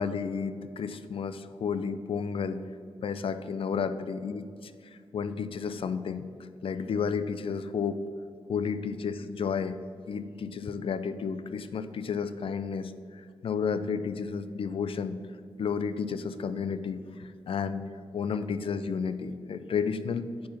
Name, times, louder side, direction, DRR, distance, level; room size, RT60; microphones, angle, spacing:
voice 1, 0.0-2.6 3.0-4.7 5.1-6.2 6.6-8.0 8.5-9.8 10.1-15.2 15.6-17.8 18.1-20.5, left 6 dB, 65° left, 12 dB, 0.4 m, -32 dB
7.3 x 4.8 x 5.8 m, 2.3 s
cardioid pair, 80°, 10 cm